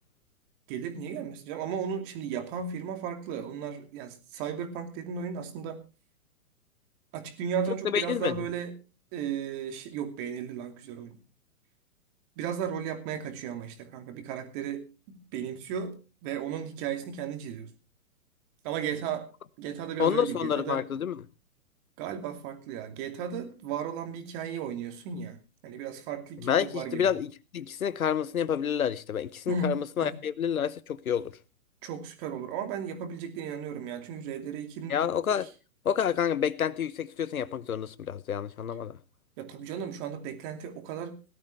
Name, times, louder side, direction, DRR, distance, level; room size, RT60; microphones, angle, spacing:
voice 1, 0.7-5.8 7.1-8.8 9.1-11.2 12.4-17.7 18.6-19.3 19.6-20.8 22.0-25.4 25.6-27.1 29.5-30.2 31.8-35.0 35.4-35.5 39.4-41.2, right 7 dB, 35° right, 2.7 m, -35 dB
voice 2, 7.9-8.3 20.0-21.2 26.4-31.3 34.9-35.5 35.8-39.0, left 8 dB, 80° left, 1.0 m, -28 dB
18.0 x 12.5 x 3.2 m
hypercardioid pair, 120°, 42 cm